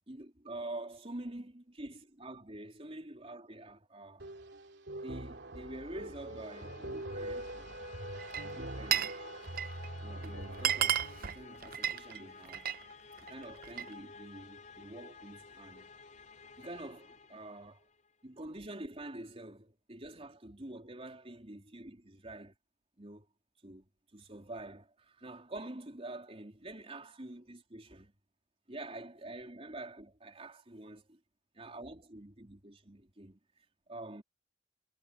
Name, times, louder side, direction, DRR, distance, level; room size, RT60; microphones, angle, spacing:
voice 1, 0.1-4.3 5.0-7.8 8.4-9.1 10.0-12.7 13.2-15.9 16.6-17.8 18.2-22.5 23.0-23.3 23.6-28.1 28.7-31.2 31.5-34.2, right 2 dB, 35° right, 3.7 m, -47 dB
sound 1, 4.2-11.2, right 1 dB, 75° right, 2.9 m, -43 dB
sound 2, 5.0-18.1, left 4 dB, 45° left, 6.2 m, -54 dB
Glass, 8.2-9.2 9.4-9.9 10.2-10.3 10.5-12.8 13.2-13.9, right 10 dB, 55° right, 0.7 m, -33 dB
head